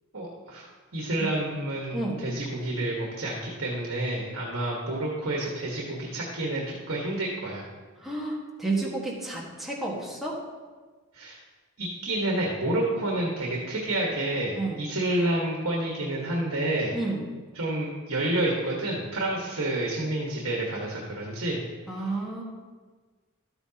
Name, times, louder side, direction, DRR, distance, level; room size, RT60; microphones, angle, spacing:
voice 1, 0.1-0.7 0.9-7.6 11.1-11.4 11.8-17.0 17.5-21.6, right 1 dB, 65° right, -3 dB, 1.6 m, -29 dB
voice 2, 8.0-10.4 14.5-14.9 16.9-17.3 21.9-22.4, right 2 dB, ahead, -4 dB, 1.6 m, -31 dB
13.0 x 8.9 x 2.9 m, 1.4 s
head